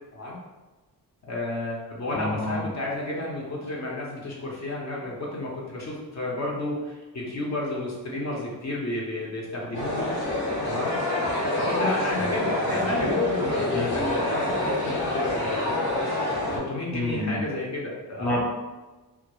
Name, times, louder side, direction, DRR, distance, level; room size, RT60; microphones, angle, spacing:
voice 1, 1.3-10.1 10.6-10.9 11.6-15.9 16.5-18.3, left 1 dB, 45° left, -3 dB, 0.6 m, -31 dB
voice 2, 2.1-2.6 12.7-13.2 13.7-13.9 16.9-17.4 18.2-18.5, left 1 dB, 5° left, -5 dB, 0.5 m, -29 dB
sound 1, 9.7-16.6, left 2 dB, 80° left, 0.8 m, -27 dB
2.3 x 2.0 x 2.9 m, 1.2 s
wide cardioid pair, 105°, 38 cm